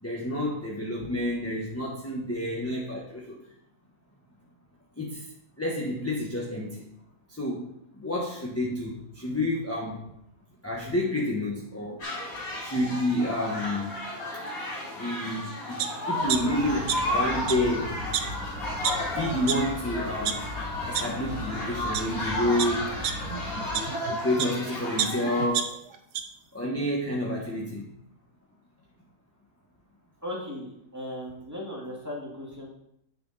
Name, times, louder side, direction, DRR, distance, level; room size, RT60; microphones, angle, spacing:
voice 1, 0.0-3.4 5.0-5.3 5.6-6.8 7.3-7.7 7.9-10.0 10.6-12.0 12.6-14.0 14.3-14.4 14.9-18.0 19.1-20.4 20.9-22.9 24.2-25.7 26.5-27.9, left 1 dB, 10° left, -3 dB, 1.1 m, -29 dB
sound 1, 12.0-25.5, left 1 dB, 60° left, 2.9 m, -34 dB
sound 2, 15.8-15.9 16.3-17.2 17.4-17.5 18.1-18.2 18.8-18.9 19.5-19.6 20.0-20.3 20.9-21.0 21.7-22.0 22.6-24.5 25.0-26.2 26.6-26.7, right 9 dB, 90° right, 1.3 m, -29 dB
sound 3, 16.2-23.8, left 1 dB, 85° left, 2.9 m, -37 dB
voice 2, 30.2-32.7, left 1 dB, 10° right, -4 dB, 2.2 m, -37 dB
8.9 x 6.9 x 4.1 m, 0.75 s
omnidirectional pair, 1.7 m